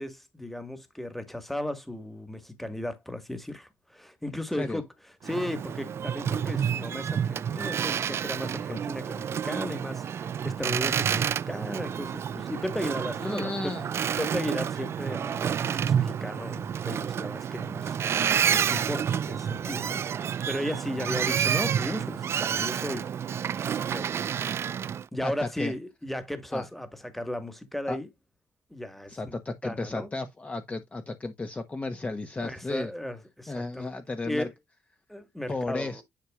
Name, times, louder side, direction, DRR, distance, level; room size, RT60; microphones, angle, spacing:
voice 1, 0.0-4.8 5.2-13.8 14.2-17.9 18.5-20.0 20.5-23.1 23.9-24.4 25.1-28.1 28.7-29.3 29.6-30.1 32.4-33.9 34.2-34.5 35.1-36.0, left 1 dB, 5° left, 1.7 m, -35 dB
Boat Water vehicle, 5.2-25.1, right 8 dB, 50° right, 0.4 m, -29 dB
voice 2, 13.2-13.9 25.2-25.7 26.5-26.7 27.9-28.0 29.1-32.9 33.5-34.5 35.5-36.0, left 3 dB, 25° left, 1.2 m, -33 dB
10.5 x 4.6 x 2.4 m
cardioid pair, 95°, 6 cm